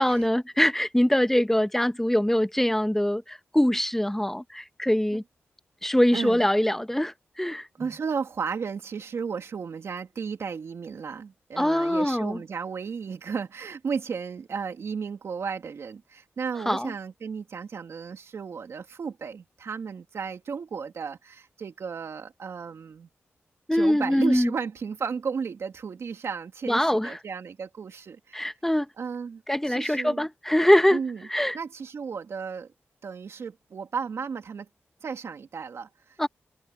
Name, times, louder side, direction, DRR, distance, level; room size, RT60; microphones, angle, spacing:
voice 1, 0.0-5.2 5.8-7.7 11.6-12.4 16.7-16.9 23.7-24.5 26.7-27.2 28.3-28.9 29.5-31.0 31.3-31.6 36.2-36.3, left 1 dB, 5° left, 1.2 m, -23 dB
voice 2, 6.1-6.5 7.8-23.1 23.7-28.4 29.0-29.4 29.7-30.3 30.9-31.2 31.5-32.7 33.0-34.7 35.0-36.3, right 6 dB, 75° right, 2.8 m, -34 dB
cardioid pair, 55°, 5 cm